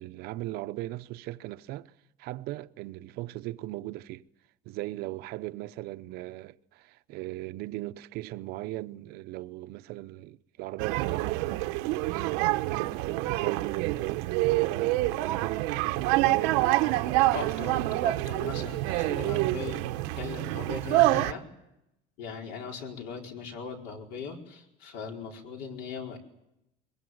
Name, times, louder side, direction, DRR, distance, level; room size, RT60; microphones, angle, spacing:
voice 1, 0.0-1.9 2.2-4.2 4.6-11.6 12.3-18.2, right 17 dB, 60° right, 0.8 m, -38 dB
sound 1, 10.8-21.3, right 17 dB, 90° right, 1.0 m, -27 dB
voice 2, 17.2-19.9 20.2-21.4 22.2-26.2, left 5 dB, 70° left, 4.8 m, -39 dB
22.5 x 22.0 x 7.9 m
cardioid pair, 155°, 18 cm